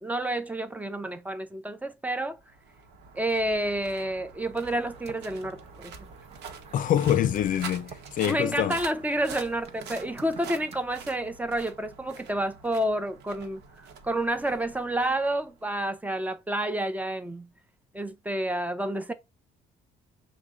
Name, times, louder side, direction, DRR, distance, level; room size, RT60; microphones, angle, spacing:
voice 1, 0.0-2.4 3.1-5.6 5.8-5.9 8.2-17.5 17.9-19.1, right 1 dB, 10° right, 0.5 m, -29 dB
sound 1, 2.3-15.7, right 6 dB, 85° right, 0.9 m, -46 dB
sound 2, 4.6-10.8, right 5 dB, 35° right, 0.8 m, -49 dB
voice 2, 6.7-8.8, left 10 dB, 55° left, 0.4 m, -25 dB
5.9 x 2.2 x 3.7 m
cardioid pair, 110°, 17 cm